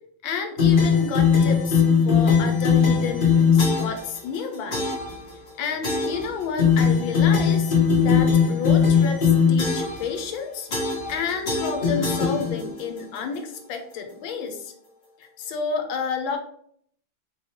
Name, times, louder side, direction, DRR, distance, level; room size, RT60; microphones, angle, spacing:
voice 1, 0.2-4.9 5.6-10.7 11.1-14.7 15.2-16.4, left 6 dB, 85° left, 5 dB, 1.4 m, -30 dB
sound 1, 0.6-4.0 4.7-5.1 5.8-6.2 6.6-10.0 10.7-11.2 11.5-12.8, left 6 dB, 70° left, 0.4 m, -20 dB
4.0 x 3.1 x 2.8 m, 0.65 s
omnidirectional pair, 2.1 m